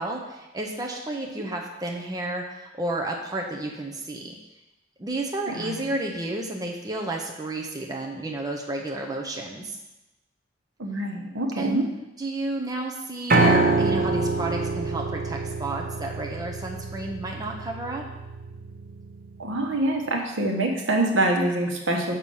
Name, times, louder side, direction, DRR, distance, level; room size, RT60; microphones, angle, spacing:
voice 1, 0.0-4.4 5.0-9.8 11.5-11.9 12.2-18.0, right 2 dB, 20° right, 0 dB, 0.8 m, -31 dB
voice 2, 10.8-11.8 19.4-22.1, right 1 dB, 75° right, 1 dB, 1.2 m, -25 dB
Piano, 13.3-19.5, right 3 dB, 50° right, 0.7 m, -26 dB
6.6 x 5.8 x 5.5 m, 0.99 s
head